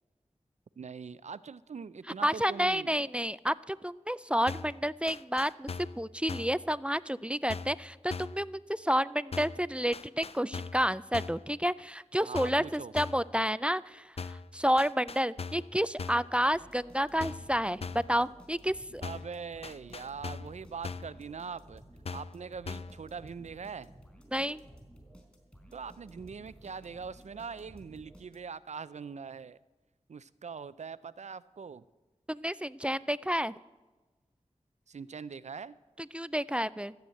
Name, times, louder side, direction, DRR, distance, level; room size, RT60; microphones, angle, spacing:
voice 1, 0.8-3.0 12.2-12.9 19.0-21.8 22.1-23.9 25.7-29.6 30.1-31.9 34.9-35.7, right 5 dB, 70° right, 17 dB, 0.4 m, -42 dB
voice 2, 2.2-5.7 6.0-19.0 24.3-24.6 32.3-33.5 36.0-36.9, equal, 10° right, 17 dB, 0.3 m, -30 dB
sound 1, 4.5-4.8 5.1-6.0 6.3-6.6 7.5-7.8 8.1-8.4 9.3-9.6 9.9-10.9 11.1-11.5 12.3-12.7 13.0-13.3 14.2-14.5 14.8-15.7 16.0-16.3 17.2-17.5 17.8-18.1 19.0-19.3 19.6-20.6 20.8-21.2 22.0-22.4 22.7-23.0, left 4 dB, 55° left, 0.5 m, -40 dB
sound 2, 16.5-28.7, right 1 dB, 10° left, 4.1 m, -55 dB
14.5 x 7.9 x 7.7 m, 1.2 s
wide cardioid pair, 60°, 12 cm